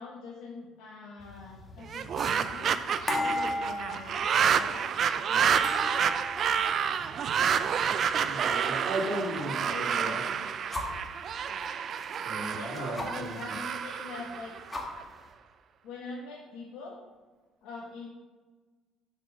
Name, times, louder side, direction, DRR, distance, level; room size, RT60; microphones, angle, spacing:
voice 1, 0.0-2.8 3.2-4.2 4.5-4.9 5.2-5.6 9.4-10.5 12.5-14.6 15.8-17.0 17.6-18.1, left 4 dB, 75° left, -4 dB, 1.4 m, -43 dB
sound 1, 1.2-9.7 10.0-11.1 11.6-13.6 14.0-14.1 14.4-15.3, left 1 dB, 25° left, 2.1 m, -38 dB
sound 2, 1.8-15.0, right 7 dB, 55° right, 0.5 m, -29 dB
voice 2, 8.2-10.2 12.2-13.3, right 1 dB, 70° right, 0 dB, 2.0 m, -35 dB
6.3 x 5.3 x 6.4 m, 1.3 s
supercardioid pair, 75°, 0 cm